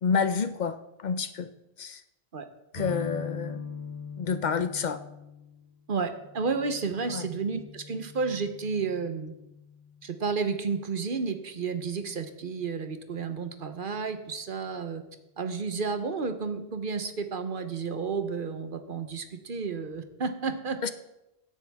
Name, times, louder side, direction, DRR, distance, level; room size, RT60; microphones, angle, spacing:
voice 1, 0.0-1.5 1.8-2.0 2.7-3.6 4.2-5.0 7.1-7.3 20.8-20.9, left 6 dB, 50° left, 11 dB, 0.7 m, -29 dB
sound 1, 2.7-10.4, left 4 dB, 70° left, 2.5 m, -42 dB
voice 2, 5.9-9.3 10.0-15.0 15.4-20.9, right 5 dB, 55° right, 8 dB, 1.1 m, -31 dB
16.5 x 10.0 x 3.5 m, 0.93 s
omnidirectional pair, 1.0 m